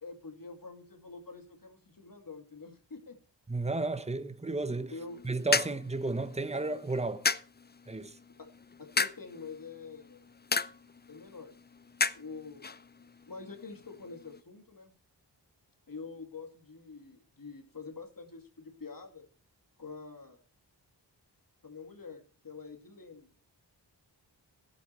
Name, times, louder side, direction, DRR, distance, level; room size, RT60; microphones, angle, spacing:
voice 1, 0.0-3.2 4.9-5.2 8.4-8.5 8.8-10.2 11.1-11.5 12.1-12.7 13.0-14.9 15.9-19.3 19.8-20.4 21.6-23.3, left 4 dB, 50° left, 2.4 m, -46 dB
voice 2, 3.5-4.9 5.2-7.3 7.9-8.2, right 3 dB, 15° right, 1.1 m, -33 dB
sound 1, 5.0-14.4, left 4 dB, 25° left, 0.5 m, -36 dB
16.0 x 8.4 x 4.4 m
wide cardioid pair, 95°, 42 cm